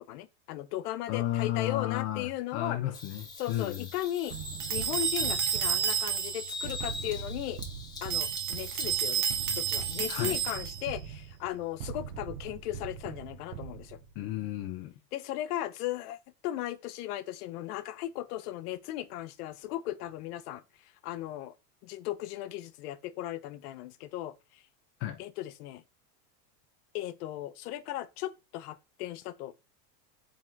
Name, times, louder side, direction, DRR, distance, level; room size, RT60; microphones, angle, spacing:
voice 1, 0.0-2.8 3.4-4.3 4.7-7.6 8.0-9.3 9.5-14.0 15.1-16.2 16.4-20.6 21.0-21.5 21.8-24.4 25.2-25.8 26.9-29.5, left 14 dB, 75° left, 0.6 m, -36 dB
voice 2, 1.1-3.9 10.1-10.4 14.2-14.9 25.0-25.2, left 13 dB, 35° left, 0.4 m, -33 dB
Bird vocalization bird call bird song, 2.9-10.5, left 2 dB, 10° left, 0.7 m, -42 dB
sound 1, 4.3-14.2, right 7 dB, 70° right, 0.8 m, -42 dB
sound 2, 4.6-6.6 8.0-10.9, right 8 dB, 35° right, 0.8 m, -31 dB
3.7 x 2.9 x 4.3 m
supercardioid pair, 150°, 46 cm